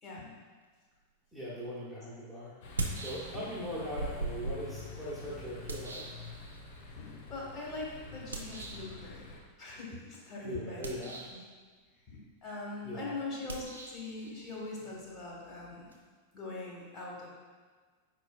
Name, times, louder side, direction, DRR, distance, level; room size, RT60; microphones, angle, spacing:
voice 1, 0.0-0.3 3.3-3.5 6.8-9.3 9.6-11.1 12.1-15.9 16.3-17.3, left 2 dB, 30° left, -5 dB, 1.4 m, -42 dB
voice 2, 1.3-2.5 3.0-6.2 10.4-11.2 12.8-13.2, equal, 5° right, -8 dB, 1.0 m, -40 dB
sound 1, 1.6-1.7 2.6-3.6 4.0-6.8 8.3-8.9 10.7-11.5 13.4-16.0, right 2 dB, 75° right, 0.5 m, -41 dB
sound 2, 2.6-9.4, left 3 dB, 50° left, 0.6 m, -48 dB
4.9 x 4.4 x 2.3 m, 1.5 s
figure-of-eight pair, 90°, 0 cm